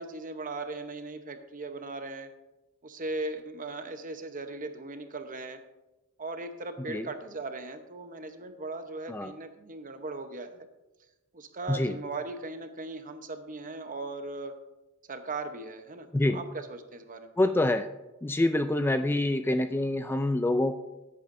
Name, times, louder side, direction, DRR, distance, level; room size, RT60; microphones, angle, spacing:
voice 1, 0.0-2.3 2.8-5.6 6.2-10.7 11.3-14.5 15.1-17.4, right 2 dB, 40° right, 8 dB, 0.9 m, -38 dB
voice 2, 17.4-17.9 18.2-20.8, left 1 dB, 10° left, 8 dB, 0.3 m, -26 dB
16.0 x 8.5 x 2.6 m, 1.0 s
head